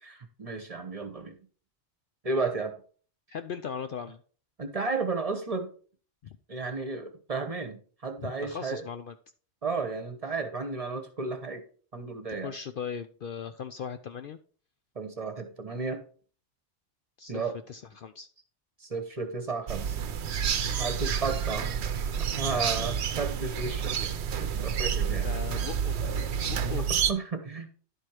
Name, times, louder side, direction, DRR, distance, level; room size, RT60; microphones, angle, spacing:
voice 1, 0.0-1.4 2.2-2.7 4.6-5.7 6.5-8.8 9.6-11.6 11.9-12.5 14.9-16.0 17.3-17.5 18.8-20.0 20.8-21.8 22.3-24.0 24.3-25.3 26.6-27.7, right 4 dB, 35° right, 7 dB, 1.1 m, -33 dB
voice 2, 3.3-4.2 6.2-6.4 8.2-9.1 12.4-14.4 17.2-17.4 17.7-18.3 25.0-26.0 26.4-26.9, left 7 dB, 60° left, 9 dB, 0.6 m, -38 dB
sound 1, 19.7-27.1, right 7 dB, 70° right, 0.9 m, -29 dB
11.0 x 4.5 x 4.7 m, 0.42 s
omnidirectional pair, 1.2 m